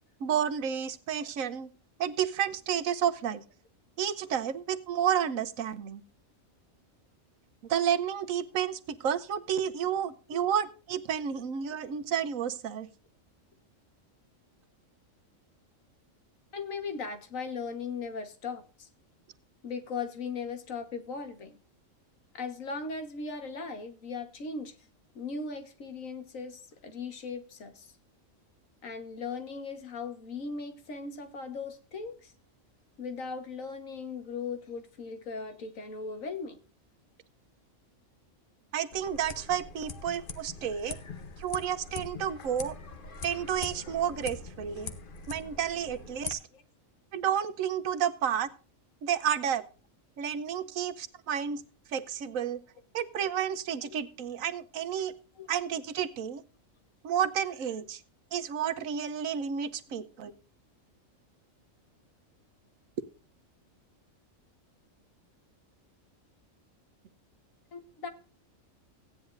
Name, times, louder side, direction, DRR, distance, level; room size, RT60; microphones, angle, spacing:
voice 1, 0.2-1.7 2.0-3.4 4.0-6.0 7.7-12.9 38.7-41.0 41.4-42.8 43.2-44.9 45.3-46.4 47.1-48.5 49.0-49.6 50.2-51.6 51.9-52.6 52.9-55.1 55.5-56.4 57.0-58.0 58.3-60.3, right 8 dB, 80° right, 13 dB, 1.2 m, -31 dB
voice 2, 16.5-18.9 19.6-21.6 22.3-24.7 25.1-27.9 28.8-32.3 33.0-36.6 46.5-46.6 53.8-54.0 55.4-55.5 59.9-60.0 67.7-68.1, left 4 dB, 80° left, 8 dB, 1.8 m, -38 dB
sound 1, 38.9-46.3, left 4 dB, 45° left, 1.0 m, -42 dB
16.0 x 9.9 x 2.5 m, 0.36 s
omnidirectional pair, 1.4 m